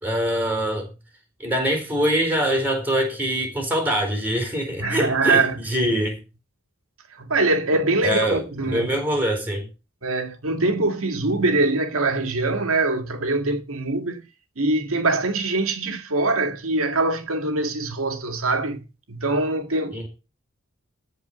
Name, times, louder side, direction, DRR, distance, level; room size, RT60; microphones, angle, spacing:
voice 1, 0.0-0.9 1.4-6.2 8.0-9.7 19.9-20.1, equal, 10° right, 4.2 m, -24 dB
voice 2, 4.8-5.9 7.2-9.0 10.0-14.2 14.6-20.1, right 2 dB, 80° right, 2.0 m, -23 dB
14.0 x 4.8 x 7.9 m
head